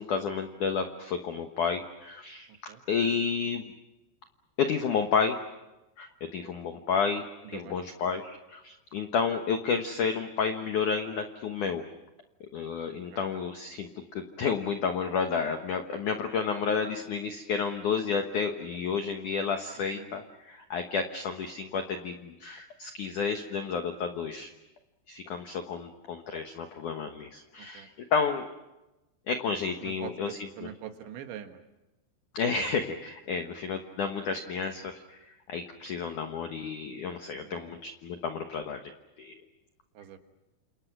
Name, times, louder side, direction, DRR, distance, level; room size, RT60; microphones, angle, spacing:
voice 1, 0.0-2.5 2.9-3.7 4.6-5.4 6.0-11.8 12.5-24.5 25.1-28.5 29.3-30.7 32.3-38.8 39.2-39.3, left 5 dB, 70° left, 6 dB, 1.9 m, -31 dB
voice 2, 29.8-31.6 37.4-37.7 40.0-40.2, right 10 dB, 70° right, 7 dB, 3.7 m, -43 dB
29.0 x 28.0 x 6.1 m, 1.0 s
omnidirectional pair, 5.6 m